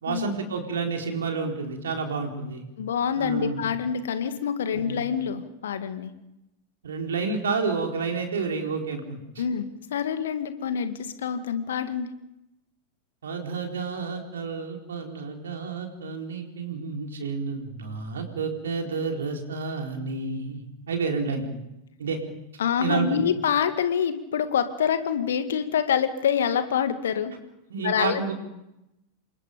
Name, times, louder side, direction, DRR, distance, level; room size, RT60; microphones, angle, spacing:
voice 1, 0.0-2.7 3.2-3.6 4.7-5.0 6.8-9.4 13.2-21.5 22.0-22.2 22.8-23.3 27.7-28.3, right 4 dB, 65° right, 3 dB, 4.3 m, -30 dB
voice 2, 2.8-6.1 9.4-12.1 22.6-27.3 27.8-28.3, left 8 dB, 65° left, 10 dB, 2.1 m, -26 dB
28.5 x 24.5 x 5.3 m, 0.88 s
figure-of-eight pair, 90°, 0 cm